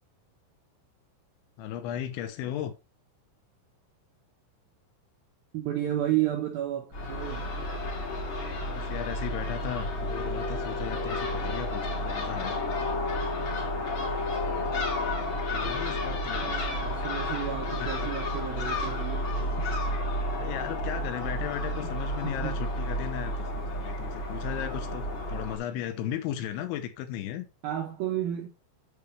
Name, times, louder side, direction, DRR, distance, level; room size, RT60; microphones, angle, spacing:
voice 1, 1.6-2.7 8.6-12.6 15.5-16.6 17.8-18.1 20.3-27.5, left 10 dB, 80° left, 3.1 m, -36 dB
voice 2, 5.5-7.5 16.3-19.7 22.2-22.6 27.6-28.5, right 12 dB, 75° right, 2.2 m, -32 dB
Crow / Gull seagull, 6.9-25.6, left 1 dB, 55° left, 1.4 m, -31 dB
8.8 x 6.7 x 3.2 m
omnidirectional pair, 5.7 m